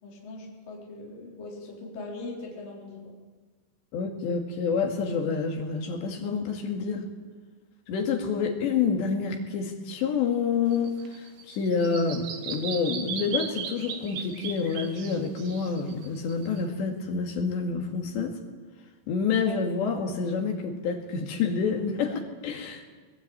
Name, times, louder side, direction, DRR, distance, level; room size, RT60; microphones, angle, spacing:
voice 1, 0.0-3.1, left 2 dB, 45° left, -3 dB, 5.4 m, -40 dB
voice 2, 3.9-7.0 7.9-18.3 19.1-22.9, left 5 dB, 65° left, 3 dB, 4.1 m, -28 dB
Bird vocalization bird call bird song, 10.7-16.6, right 7 dB, 60° right, 3.1 m, -37 dB
22.0 x 20.5 x 8.8 m, 1.4 s
omnidirectional pair, 5.8 m